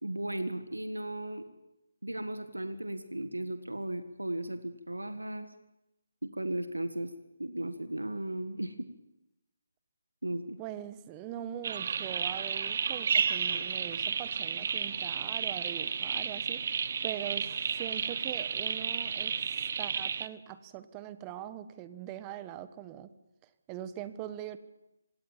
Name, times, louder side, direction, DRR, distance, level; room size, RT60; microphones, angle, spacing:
voice 1, 0.0-1.4 2.0-5.5 6.2-7.1 7.4-8.9 10.2-10.6, right 1 dB, 90° right, 10 dB, 1.7 m, -36 dB
voice 2, 10.6-16.7 17.0-23.1 23.7-24.6, right 11 dB, 20° right, 13 dB, 1.2 m, -42 dB
sound 1, 11.6-20.3, right 6 dB, 45° right, 0.9 m, -32 dB
25.5 x 18.0 x 7.3 m, 0.92 s
figure-of-eight pair, 150°, 0 cm